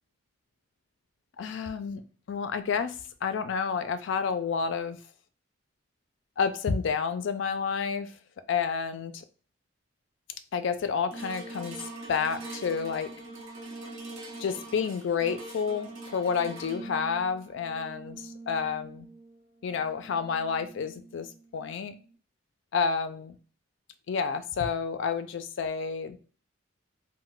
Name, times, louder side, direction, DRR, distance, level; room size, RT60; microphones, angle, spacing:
voice 1, 1.4-2.0 2.3-5.0 6.4-8.1 8.5-9.2 10.5-11.8 12.1-13.1 14.4-19.1 19.6-21.9 22.7-23.4 24.1-26.3, left 6 dB, 60° left, 10 dB, 0.3 m, -30 dB
sound 1, 11.1-21.5 22.1-22.2, right 2 dB, 65° right, 0.7 m, -44 dB
2.2 x 2.1 x 3.7 m, 0.40 s
head